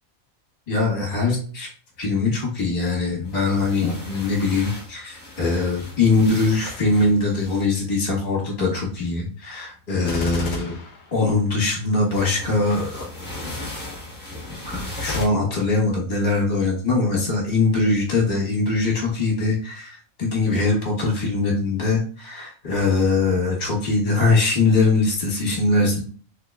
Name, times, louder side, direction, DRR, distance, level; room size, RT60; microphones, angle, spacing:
voice 1, 0.7-1.7 2.0-10.8 11.1-13.0 13.5-13.7 14.6-26.0, left 3 dB, 35° left, -3 dB, 1.2 m, -22 dB
sound 1, 3.2-8.2 9.9-10.2 12.1-15.3, left 2 dB, 10° left, 1.0 m, -37 dB
Gunshot gunfire, 10.0-11.8 15.0-15.2, left 4 dB, 60° left, 0.9 m, -31 dB
3.7 x 3.6 x 2.3 m, 0.43 s
omnidirectional pair, 1.5 m